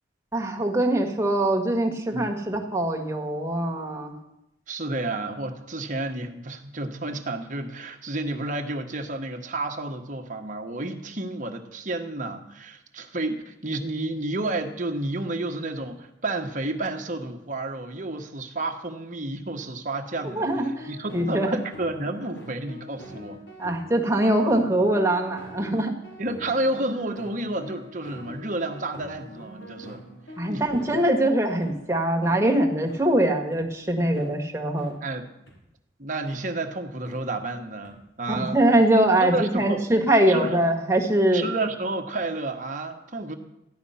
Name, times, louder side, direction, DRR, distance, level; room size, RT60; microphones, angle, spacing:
voice 1, 0.3-4.1 20.3-20.7 21.1-21.6 23.6-25.9 30.4-35.0 38.3-41.5, right 1 dB, 15° right, 1 dB, 1.5 m, -22 dB
voice 2, 2.1-2.6 4.7-23.4 26.2-30.0 30.5-30.7 34.1-34.3 35.0-35.2 36.0-38.6 39.2-39.8 40.3-40.6 41.3-43.3, right 2 dB, 45° right, 4 dB, 1.2 m, -31 dB
sound 1, 20.1-31.7 32.2-32.4 32.9-33.0 33.5-33.6 34.1-34.3 34.8-34.9 35.5-35.6 36.3-36.4 37.0-37.2 37.8-37.9 38.6-38.8, equal, 85° left, 3.6 m, -44 dB
14.0 x 10.5 x 5.7 m, 0.88 s
head